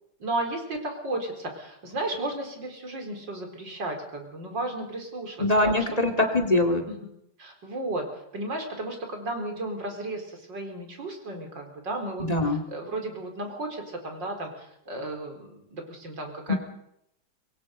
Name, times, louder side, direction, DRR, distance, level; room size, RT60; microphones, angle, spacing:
voice 1, 0.2-5.4 5.6-5.8 6.2-6.3 6.9-7.0 7.4-8.0 8.3-16.6, right 2 dB, 85° right, 3 dB, 5.1 m, -34 dB
voice 2, 5.4-6.8 12.2-12.6 16.5-16.6, left 2 dB, 20° left, 7 dB, 2.2 m, -23 dB
25.5 x 22.0 x 5.4 m, 0.76 s
omnidirectional pair, 1.9 m